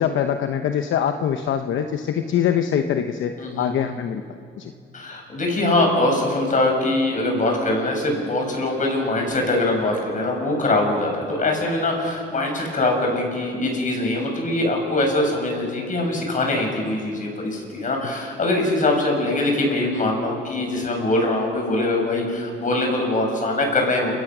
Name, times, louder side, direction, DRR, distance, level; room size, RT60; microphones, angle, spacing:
voice 1, 0.0-4.2 4.6-4.7, left 8 dB, 75° left, 7 dB, 0.9 m, -23 dB
voice 2, 3.4-3.8 4.9-24.1, left 2 dB, 40° left, 2 dB, 6.4 m, -22 dB
29.0 x 16.0 x 6.2 m, 2.3 s
cardioid pair, 90°, 20 cm